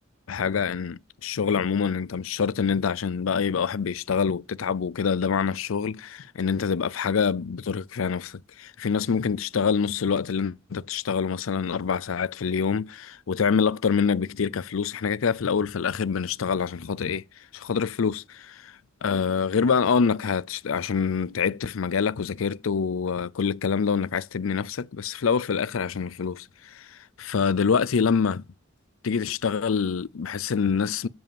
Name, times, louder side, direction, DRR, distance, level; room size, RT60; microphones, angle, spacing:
voice 1, 0.3-17.2 17.5-18.7 19.0-28.4 29.0-31.1, left 6 dB, 80° left, 0.5 m, -26 dB
7.9 x 7.6 x 7.1 m
head